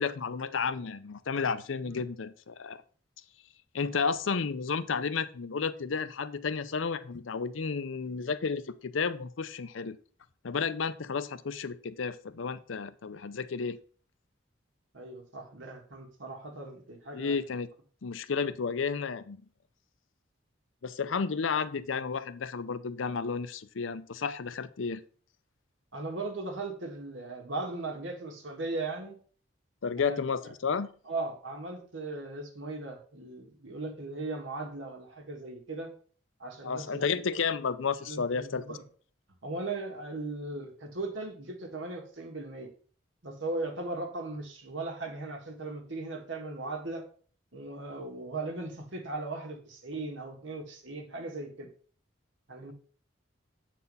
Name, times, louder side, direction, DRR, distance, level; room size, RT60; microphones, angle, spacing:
voice 1, 0.0-2.8 3.7-10.0 10.4-13.8 17.1-17.7 18.0-19.4 20.8-25.0 29.8-30.9 36.6-38.8, left 5 dB, 85° left, 13 dB, 0.6 m, -32 dB
voice 2, 3.8-4.1 14.9-17.4 25.9-29.2 30.0-30.2 31.1-35.9 36.4-37.4 38.0-38.8 39.4-42.7 43.2-47.0 47.5-51.7 52.5-52.7, right 2 dB, 80° right, 2 dB, 1.9 m, -38 dB
8.1 x 4.3 x 5.4 m, 0.44 s
head